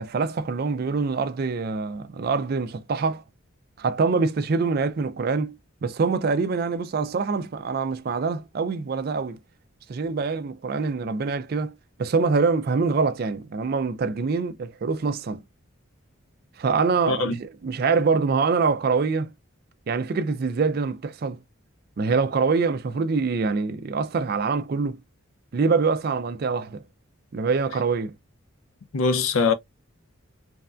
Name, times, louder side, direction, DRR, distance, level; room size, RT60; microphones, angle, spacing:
voice 1, 0.0-3.2 3.8-5.6 5.8-9.4 9.9-11.7 12.0-15.4 16.6-19.3 19.9-21.4 22.0-25.0 25.5-26.8 27.3-28.1, right 4 dB, 45° right, 0.4 m, -24 dB
voice 2, 28.9-29.5, left 4 dB, 80° left, 0.5 m, -22 dB
3.3 x 2.2 x 2.4 m
head